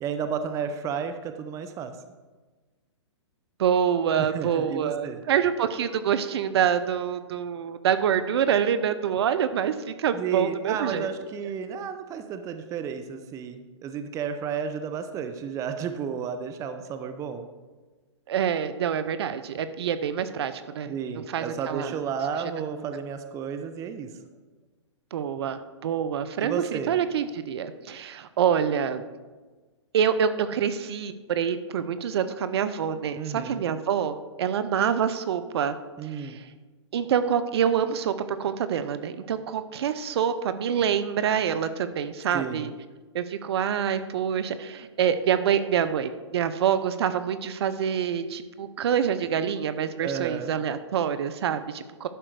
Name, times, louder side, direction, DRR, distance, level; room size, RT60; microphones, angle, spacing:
voice 1, 0.0-2.0 4.2-5.2 10.1-17.5 20.9-24.1 26.4-26.9 33.2-33.6 36.0-36.4 42.3-42.7 50.0-50.5, right 7 dB, 20° right, 8 dB, 0.6 m, -32 dB
voice 2, 3.6-11.1 18.3-20.9 21.3-22.0 25.1-29.0 29.9-35.7 36.1-36.5 36.9-42.7 43.1-52.1, right 8 dB, 60° right, 12 dB, 0.7 m, -26 dB
11.0 x 4.4 x 6.6 m, 1.3 s
hypercardioid pair, 130°, 16 cm